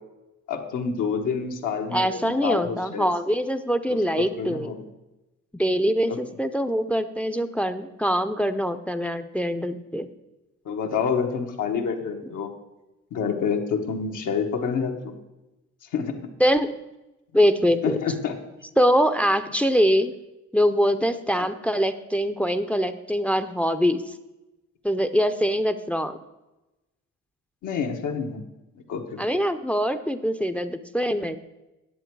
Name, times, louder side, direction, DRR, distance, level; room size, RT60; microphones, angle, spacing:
voice 1, 0.5-3.1 3.9-4.9 6.1-6.2 10.6-12.5 13.1-15.1 15.9-16.1 17.8-18.3 21.4-21.5 27.6-28.4 28.9-29.2, left 6 dB, 80° left, 3 dB, 1.3 m, -28 dB
voice 2, 1.9-4.7 5.5-10.1 16.4-16.7 17.3-18.0 18.8-20.1 20.5-24.0 24.8-26.2 29.2-31.4, equal, 5° left, 11 dB, 0.5 m, -23 dB
10.0 x 7.5 x 4.6 m, 1.0 s
cardioid pair, 90°, 30 cm